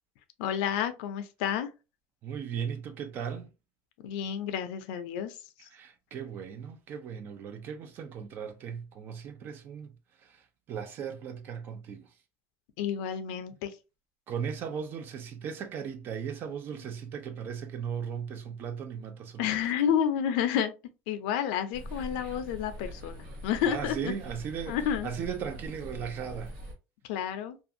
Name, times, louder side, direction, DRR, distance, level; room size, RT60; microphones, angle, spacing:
voice 1, 0.4-1.7 4.0-5.3 12.8-13.7 19.4-20.7 21.1-24.1 24.7-25.1 27.0-27.6, left 9 dB, 90° left, 0.5 m, -30 dB
voice 2, 2.2-3.5 5.6-9.9 10.2-12.1 14.3-19.7 23.6-26.6, right 7 dB, 45° right, 0.4 m, -37 dB
sound 1, 21.7-26.7, equal, 80° right, 1.2 m, -43 dB
2.5 x 2.3 x 2.5 m
cardioid pair, 135°, 5 cm